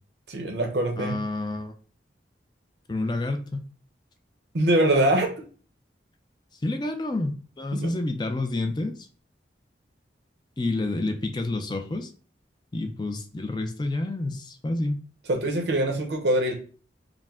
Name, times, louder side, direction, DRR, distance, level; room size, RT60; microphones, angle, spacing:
voice 1, 0.3-1.2 4.5-5.3 7.7-7.9 15.3-16.5, right 1 dB, 70° right, 3 dB, 0.8 m, -23 dB
voice 2, 1.0-1.7 2.9-3.6 6.6-8.9 10.6-12.1 12.7-15.0, left 2 dB, 25° left, 5 dB, 0.5 m, -29 dB
4.8 x 2.1 x 3.6 m, 0.40 s
head